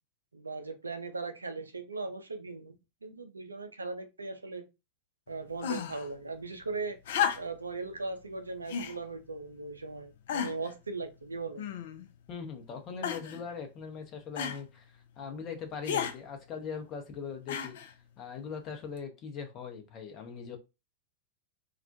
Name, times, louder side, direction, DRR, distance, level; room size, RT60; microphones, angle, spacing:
voice 1, 0.3-2.7 3.0-4.6 5.3-7.0 7.4-11.6, right 3 dB, 80° right, 0.4 m, -38 dB
sound 1, 5.6-6.1 7.0-7.7 8.7-9.0 9.7-9.8 10.3-10.7 11.6-12.1 13.0-13.4 14.4-14.6 15.8-16.2 17.5-17.9 19.0-19.1, left 8 dB, 55° left, 0.3 m, -33 dB
voice 2, 12.3-17.8 18.2-20.6, left 6 dB, 35° left, 0.7 m, -41 dB
2.3 x 2.1 x 2.6 m
figure-of-eight pair, 90°, 0 cm